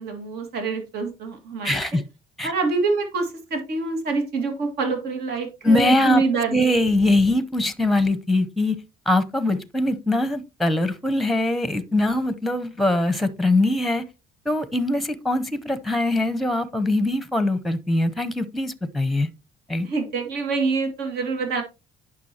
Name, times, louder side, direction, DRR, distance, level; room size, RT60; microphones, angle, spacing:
voice 1, 0.0-1.8 2.4-6.7 19.8-21.6, right 4 dB, 75° right, 5 dB, 2.1 m, -25 dB
voice 2, 1.6-2.0 2.4-2.5 5.6-6.2 6.5-8.8 9.1-14.0 14.4-19.3 19.7-19.9, left 2 dB, ahead, 13 dB, 0.8 m, -22 dB
9.3 x 6.0 x 2.9 m, 0.28 s
cardioid pair, 110°, 17 cm